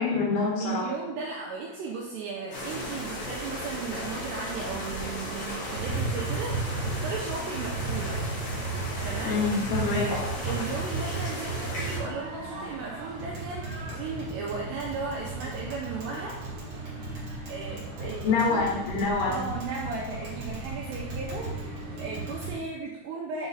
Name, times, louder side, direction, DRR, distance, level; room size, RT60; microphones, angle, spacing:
voice 1, 0.0-0.9 9.2-10.1 18.0-19.4, left 4 dB, 75° left, -2 dB, 3.6 m, -26 dB
voice 2, 0.6-8.2 9.0-9.4 9.9-10.1 10.5-16.4 17.5-18.7 19.3-23.5, right 4 dB, 85° right, -2 dB, 2.4 m, -36 dB
sound 1, 2.5-12.0, equal, 55° left, 1.8 m, -35 dB
Tap, 5.7-22.5, right 4 dB, 50° right, 2.3 m, -35 dB
sound 2, 11.8-22.6, right 2 dB, 70° right, 2.1 m, -41 dB
7.4 x 3.9 x 4.0 m, 1.0 s
omnidirectional pair, 5.6 m